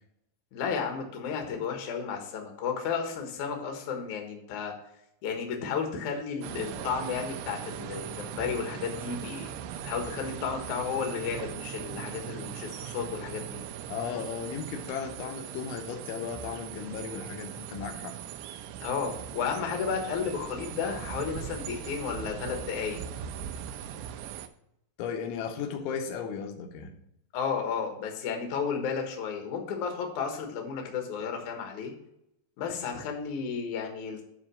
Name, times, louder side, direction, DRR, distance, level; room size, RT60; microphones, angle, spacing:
voice 1, 0.5-4.7 5.2-9.5 9.8-13.6 18.8-23.0 27.3-31.9 32.6-34.2, left 6 dB, 65° left, 3 dB, 2.0 m, -33 dB
sound 1, 6.4-24.5, right 9 dB, 85° right, 2.5 m, -40 dB
voice 2, 13.9-18.2 25.0-26.9, left 6 dB, 85° left, 4 dB, 3.3 m, -35 dB
9.9 x 3.9 x 6.2 m, 0.79 s
omnidirectional pair, 5.3 m